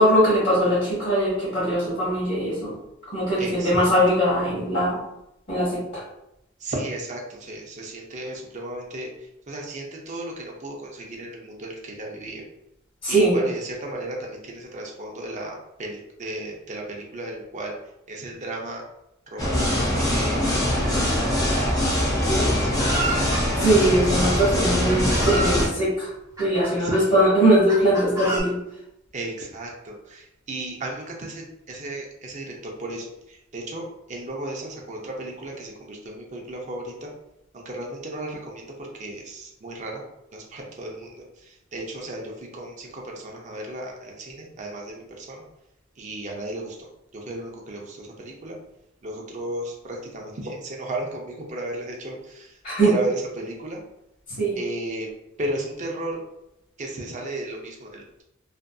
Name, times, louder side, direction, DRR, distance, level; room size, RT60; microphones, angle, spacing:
voice 1, 0.0-2.8 3.1-5.0 5.5-6.0 13.0-13.4 23.6-26.1 26.4-28.6 52.6-52.9 54.4-54.6, right 1 dB, 40° left, -11 dB, 1.1 m, -21 dB
voice 2, 3.4-3.9 6.6-9.1 9.5-12.4 13.1-17.7 18.1-18.8 19.3-19.5 19.8-21.9 22.3-23.4 26.8-27.1 29.1-33.8 34.1-37.1 37.5-40.0 40.3-45.4 46.0-46.8 47.1-48.6 49.0-52.5 52.8-53.8 54.6-55.1 55.4-56.2 56.8-58.2, right 1 dB, 35° right, 0 dB, 0.5 m, -34 dB
sound 1, 19.4-25.7, left 1 dB, 15° left, 0.6 m, -22 dB
Chicken rooster, 22.8-23.4 24.4-24.5 24.9-25.6 26.4-27.0 27.7-28.4, right 1 dB, 15° right, 0.9 m, -29 dB
2.5 x 2.4 x 2.2 m, 0.84 s
head